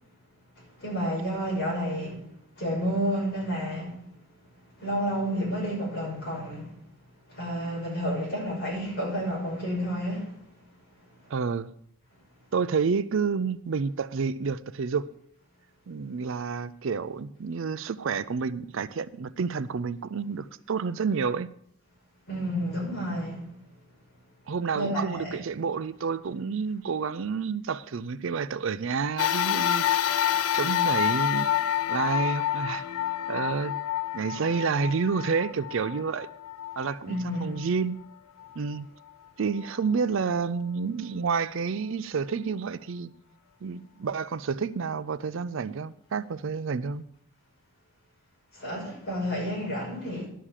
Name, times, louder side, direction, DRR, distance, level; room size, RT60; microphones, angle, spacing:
voice 1, 0.6-2.2 2.6-4.0 4.8-6.7 7.3-10.4 22.3-23.5 24.7-25.4 32.8-33.3 37.1-37.6 48.5-50.3, equal, 45° left, 5.9 m, -30 dB
voice 2, 11.3-11.7 12.5-15.1 15.9-21.5 24.5-30.3 30.5-31.5 31.9-32.8 33.3-33.7 34.1-36.3 36.8-38.0 38.6-38.9 39.4-43.1 43.6-47.0, right 5 dB, 60° right, 0.4 m, -29 dB
sound 1, 29.2-37.8 38.4-38.5 39.6-39.7, left 11 dB, 80° left, 0.5 m, -28 dB
11.0 x 6.5 x 7.3 m
head